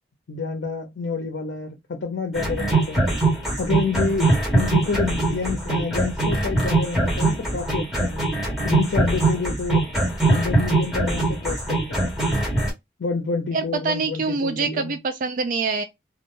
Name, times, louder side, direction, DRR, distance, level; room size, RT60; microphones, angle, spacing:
voice 1, 0.3-3.0 3.6-8.3 8.6-9.8 10.3-12.0 13.0-15.0, left 4 dB, 75° left, 0.5 m, -28 dB
sound 1, 2.4-12.7, right 2 dB, ahead, 1.0 m, -22 dB
voice 2, 13.5-15.8, right 4 dB, 50° right, 0.3 m, -25 dB
2.2 x 2.1 x 3.0 m
head